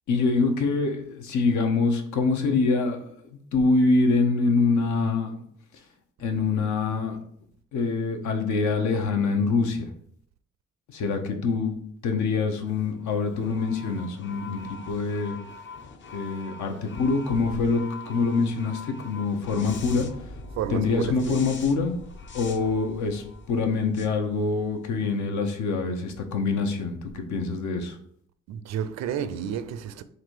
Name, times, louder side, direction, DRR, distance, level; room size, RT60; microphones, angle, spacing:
voice 1, 0.1-3.0 3.5-5.4 6.2-7.2 7.7-9.9 10.9-15.4 16.1-20.1 20.7-22.0 22.3-28.0, left 4 dB, 75° left, 0.8 m, -25 dB
sound 1, 12.7-25.1, left 3 dB, 40° left, 0.6 m, -43 dB
voice 2, 20.6-21.4 28.5-30.0, right 8 dB, 60° right, 0.4 m, -31 dB
3.9 x 2.6 x 4.6 m
cardioid pair, 90°, 30 cm